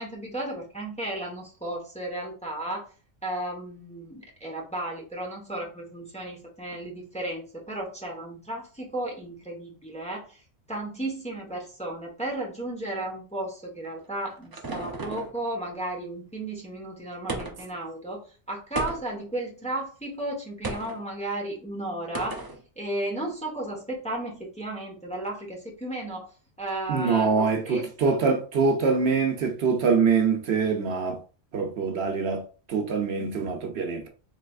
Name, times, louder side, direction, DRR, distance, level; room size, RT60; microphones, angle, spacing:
voice 1, 0.0-2.9 3.2-10.4 10.7-18.2 18.5-22.4 22.8-26.3 26.6-28.2, right 1 dB, 5° left, 0.9 m, -34 dB
sound 1, 13.8-15.4 17.3-17.8 18.7-19.3 20.6-21.0 22.1-22.6, right 3 dB, 40° right, 0.3 m, -34 dB
voice 2, 26.9-31.2 31.5-32.4 32.7-34.1, right 5 dB, 70° right, 0.9 m, -24 dB
4.0 x 3.2 x 2.3 m
omnidirectional pair, 1.1 m